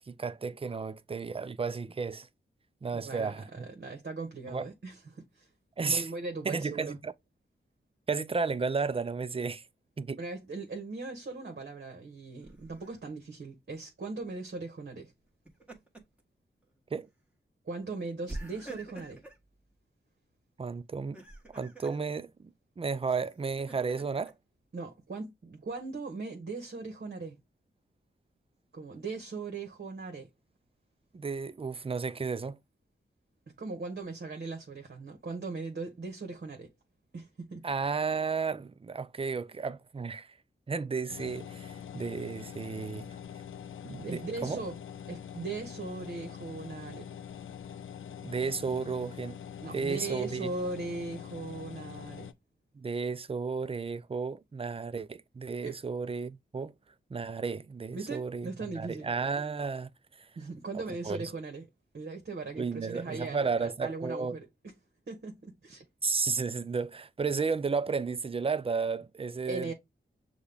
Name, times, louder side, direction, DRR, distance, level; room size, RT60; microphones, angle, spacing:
voice 1, 0.0-2.3 2.8-3.7 4.5-4.6 5.8-6.1 6.5-7.1 8.1-9.6 10.0-10.2 16.9-17.1 20.6-21.2 21.5-24.3 31.1-32.6 37.6-40.3 40.7-43.1 43.8-44.6 48.2-49.4 49.7-50.5 52.8-56.7 57.1-58.5 58.8-59.9 60.2-60.3 60.7-61.3 62.5-64.3 66.0-69.7, right 5 dB, 30° right, 0.5 m, -33 dB
voice 2, 2.9-5.5 5.9-7.0 10.2-15.1 17.6-19.2 24.7-27.4 28.7-30.3 33.6-36.7 37.1-37.6 44.0-44.8 45.1-47.1 49.6-52.3 55.6-55.8 57.9-59.1 60.4-61.7 61.9-64.7 65.1-65.8 69.5-69.7, right 3 dB, 55° right, 1.2 m, -39 dB
Laughter, 12.4-13.0 15.3-16.2 16.6-16.8 18.3-19.4 21.0-22.0 23.1-24.3, right 2 dB, 5° right, 1.5 m, -46 dB
sound 1, 41.1-52.3, left 8 dB, 80° left, 0.5 m, -44 dB
6.3 x 2.4 x 3.5 m
cardioid pair, 50°, 20 cm